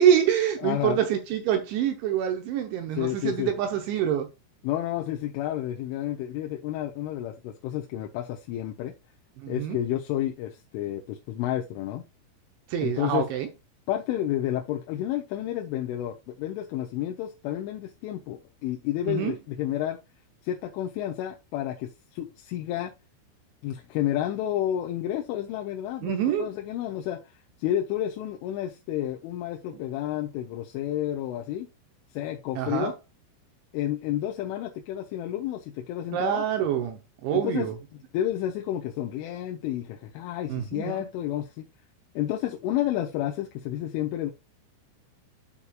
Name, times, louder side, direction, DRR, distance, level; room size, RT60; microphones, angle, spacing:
voice 1, 0.0-4.3 9.4-9.8 12.7-13.5 19.1-19.3 26.0-26.5 32.6-32.9 36.1-37.8 40.5-41.0, right 9 dB, 80° right, 2.9 m, -26 dB
voice 2, 0.6-1.0 3.0-3.5 4.6-8.9 9.5-12.0 12.8-13.3 13.9-20.0 20.4-22.9 23.6-27.2 27.6-31.7 32.1-32.9 33.7-36.4 37.3-37.7 38.1-41.7 42.2-44.3, left 12 dB, 80° left, 3.1 m, -30 dB
12.5 x 4.3 x 2.3 m
omnidirectional pair, 5.8 m